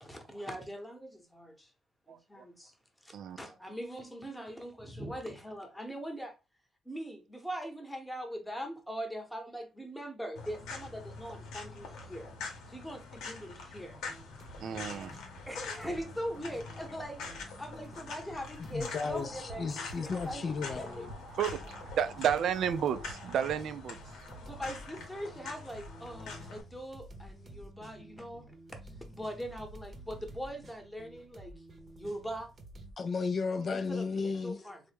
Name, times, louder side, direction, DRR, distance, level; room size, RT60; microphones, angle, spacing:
voice 1, 0.0-1.7 2.1-2.7 3.0-6.3 6.8-12.3 12.7-14.0 15.5-19.7 20.0-21.0 24.4-28.8 29.1-31.5 32.0-32.5 33.7-34.8, equal, 5° left, 0.9 m, -41 dB
sound 1, 10.3-26.6, left 4 dB, 85° left, 0.8 m, -45 dB
sound 2, 13.9-32.9, right 1 dB, 40° right, 0.7 m, -52 dB
voice 2, 14.6-15.1 21.4-21.6 22.0-24.0, right 9 dB, 70° right, 0.4 m, -31 dB
voice 3, 18.7-21.2 33.0-34.6, left 5 dB, 45° left, 0.3 m, -34 dB
sound 3, 18.8-23.9, right 2 dB, 85° right, 0.9 m, -49 dB
3.3 x 2.1 x 3.3 m
cardioid pair, 90°, 0 cm